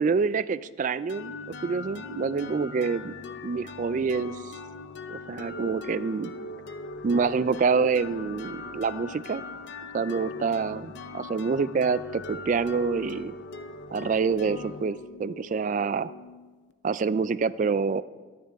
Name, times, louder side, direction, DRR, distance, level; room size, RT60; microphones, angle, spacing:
voice 1, 0.0-1.4 1.6-3.1 3.4-4.5 5.1-6.3 7.0-9.4 9.9-13.3 13.9-16.1 16.8-18.0, right 5 dB, 40° right, 17 dB, 0.3 m, -27 dB
sound 1, 1.1-16.7, left 3 dB, 60° left, 0.6 m, -40 dB
21.5 x 9.5 x 3.5 m, 1.4 s
head